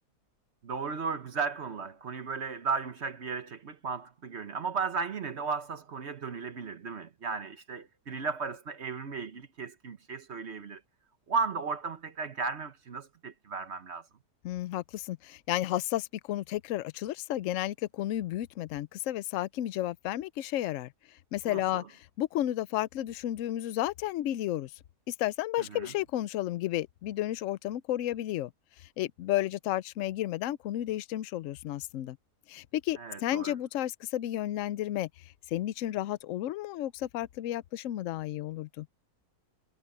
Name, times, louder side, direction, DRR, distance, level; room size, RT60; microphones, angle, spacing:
voice 1, 0.6-10.8 11.3-14.0 21.5-21.8 25.6-25.9 33.0-33.5, right 5 dB, 45° right, 1.2 m, -35 dB
voice 2, 14.4-20.9 21.3-24.7 25.1-28.5 28.8-32.2 32.5-35.1 35.5-38.9, left 13 dB, 65° left, 0.8 m, -32 dB
omnidirectional pair, 1.7 m